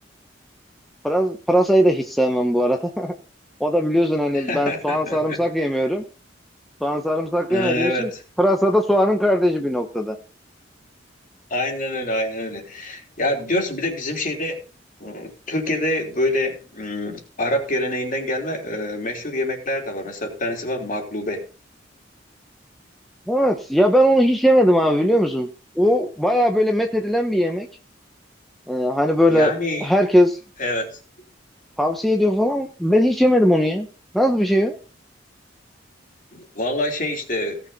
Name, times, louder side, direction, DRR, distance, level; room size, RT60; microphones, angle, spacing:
voice 1, 1.0-3.1 3.6-6.0 6.8-8.1 8.4-10.2 23.3-25.5 25.8-27.7 28.7-29.5 29.8-30.4 31.8-33.9 34.1-34.8, equal, ahead, 3 dB, 1.0 m, -19 dB
voice 2, 4.3-5.4 5.7-5.9 7.5-8.2 11.5-14.6 15.0-21.5 29.3-29.9 30.6-31.0 36.3-37.6, left 1 dB, 45° left, 2 dB, 3.3 m, -26 dB
17.5 x 6.8 x 4.2 m, 0.38 s
head